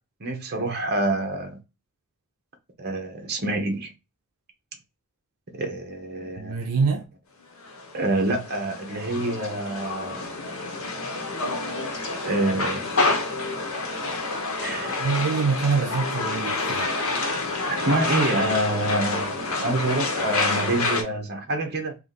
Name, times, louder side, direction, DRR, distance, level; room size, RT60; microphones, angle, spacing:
voice 1, 0.2-1.6 2.8-3.9 5.5-6.8 7.9-10.3 12.2-12.9 14.6-15.0 17.7-22.0, right 2 dB, 45° right, 1.0 m, -27 dB
voice 2, 6.4-7.1 15.0-16.9, right 5 dB, 90° right, 0.5 m, -25 dB
sound 1, 7.6-21.0, left 3 dB, 75° left, 1.1 m, -28 dB
2.9 x 2.9 x 4.0 m
head